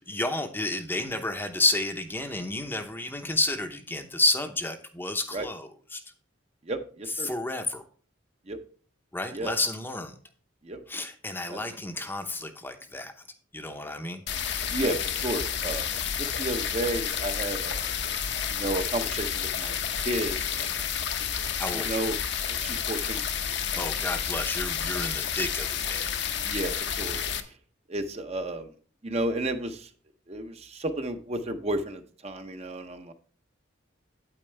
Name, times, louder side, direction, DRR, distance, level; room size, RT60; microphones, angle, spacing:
voice 1, 0.1-6.0 7.1-7.8 9.1-10.2 10.9-13.1 13.5-14.2 21.6-21.9 23.8-26.1, left 2 dB, 10° left, 6 dB, 0.7 m, -30 dB
voice 2, 6.7-7.3 8.5-8.6 9.3-9.5 10.6-10.8 11.5-11.6 14.7-15.9 16.2-17.9 18.5-19.7 20.0-20.9 21.7-22.2 22.5-23.2 23.7-23.8 26.4-27.2 27.9-28.7 29.0-29.9 30.3-33.1, right 1 dB, 30° right, 7 dB, 0.8 m, -32 dB
sound 1, 14.3-27.4, left 8 dB, 60° left, 0.9 m, -30 dB
8.9 x 8.8 x 3.3 m, 0.42 s
head